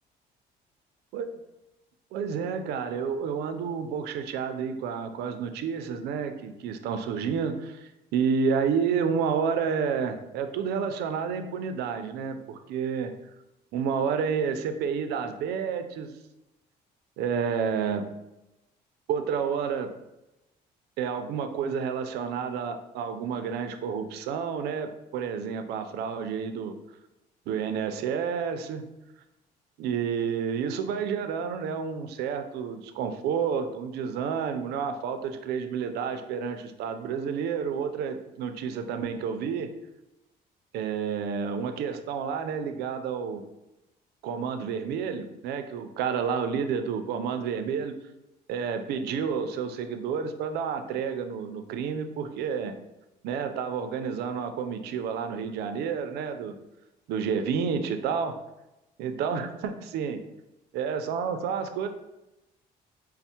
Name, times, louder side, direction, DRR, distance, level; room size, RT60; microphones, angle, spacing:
voice 1, 2.1-13.1 13.7-16.1 17.2-18.1 19.1-19.9 21.0-26.8 27.5-28.9 29.8-39.7 40.7-43.5 44.2-47.9 48.5-52.8 53.2-56.6 57.1-58.4 59.0-60.2 60.7-61.9, right 6 dB, 75° right, 7 dB, 0.4 m, -30 dB
4.3 x 2.0 x 2.8 m, 0.96 s
cardioid pair, 110°, 17 cm